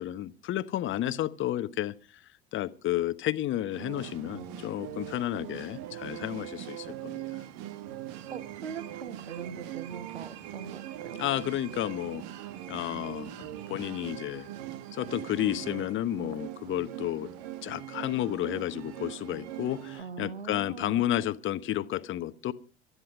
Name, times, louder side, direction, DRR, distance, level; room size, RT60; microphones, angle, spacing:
voice 1, 0.0-2.2 2.5-7.4 11.2-12.2 12.7-14.5 14.9-17.3 17.6-22.5, left 13 dB, 40° left, 1.1 m, -32 dB
sound 1, 3.7-20.0, right 12 dB, 55° right, 1.4 m, -41 dB
voice 2, 8.3-11.2 20.0-21.0, right 6 dB, 85° right, 0.8 m, -41 dB
16.5 x 12.5 x 5.0 m
figure-of-eight pair, 70°, 32 cm